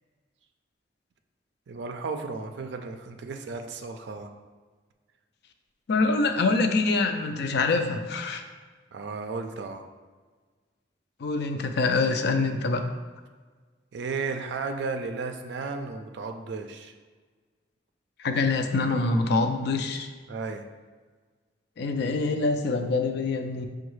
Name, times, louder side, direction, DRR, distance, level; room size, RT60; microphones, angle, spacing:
voice 1, 1.7-4.3 8.9-9.9 13.9-16.9 20.3-20.7, right 4 dB, 65° right, 6 dB, 0.4 m, -34 dB
voice 2, 5.9-8.4 11.2-12.8 18.2-20.1 21.8-23.7, left 3 dB, 65° left, 6 dB, 0.4 m, -25 dB
5.3 x 2.3 x 3.1 m, 1.4 s
head